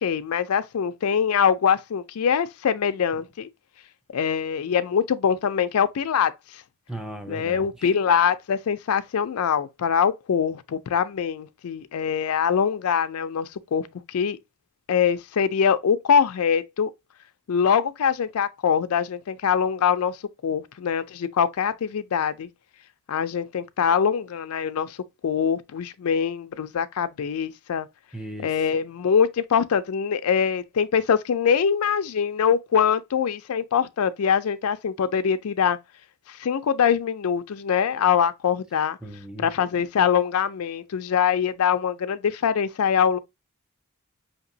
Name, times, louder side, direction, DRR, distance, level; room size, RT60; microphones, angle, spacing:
voice 1, 0.0-3.5 4.1-6.3 7.3-14.4 14.9-16.9 17.5-20.2 20.4-22.5 23.1-25.0 25.2-27.9 28.4-35.8 36.3-39.0 39.4-43.2, left 7 dB, 85° left, 0.4 m, -23 dB
voice 2, 6.9-8.0 28.1-28.7 39.0-39.5, right 1 dB, 5° right, 0.5 m, -38 dB
5.2 x 2.9 x 2.6 m
head